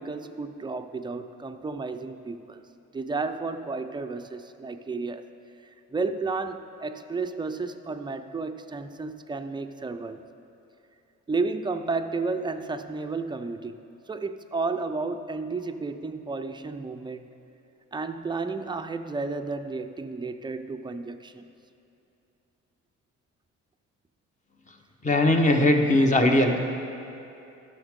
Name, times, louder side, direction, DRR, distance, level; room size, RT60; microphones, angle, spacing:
voice 1, 0.0-2.6 2.9-5.3 5.9-10.2 11.3-17.3 17.9-21.5, right 3 dB, 15° right, 8 dB, 0.4 m, -32 dB
voice 2, 25.0-26.6, left 1 dB, 25° left, 3 dB, 1.0 m, -20 dB
14.5 x 6.4 x 3.6 m, 2.7 s
cardioid pair, 90°, 30 cm